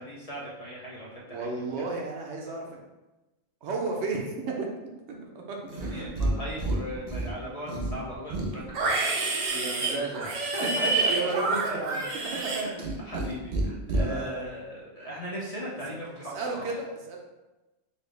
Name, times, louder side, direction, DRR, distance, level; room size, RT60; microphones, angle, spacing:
voice 1, 0.0-1.9 5.7-8.9 9.5-9.6 10.2-16.7, equal, 40° left, -5 dB, 0.7 m, -38 dB
voice 2, 1.3-2.8 3.6-4.7 5.1-6.1 9.5-10.2 10.6-10.7 11.0-13.2 13.9-14.4 16.3-17.2, right 3 dB, 80° right, 1 dB, 0.9 m, -33 dB
Livestock farm animals working animals, 5.7-6.3 6.6-7.3 7.7-13.3 13.5-14.0, right 2 dB, 50° right, 0.6 m, -28 dB
4.2 x 2.0 x 3.3 m, 1.1 s
omnidirectional pair, 1.1 m